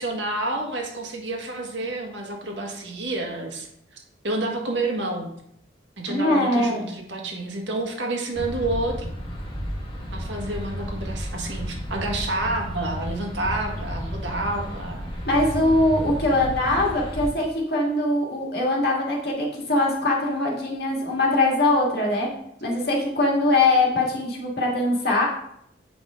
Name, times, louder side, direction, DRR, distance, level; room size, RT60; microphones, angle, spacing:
voice 1, 0.0-3.7 4.2-5.3 6.0-9.0 10.1-15.1, right 2 dB, 85° right, 1 dB, 1.6 m, -29 dB
voice 2, 6.1-6.8 15.2-22.3 22.6-25.3, left 2 dB, 60° left, -2 dB, 2.0 m, -22 dB
sound 1, 8.3-17.3, equal, 30° left, 1.6 m, -32 dB
7.8 x 5.3 x 3.7 m, 0.72 s
head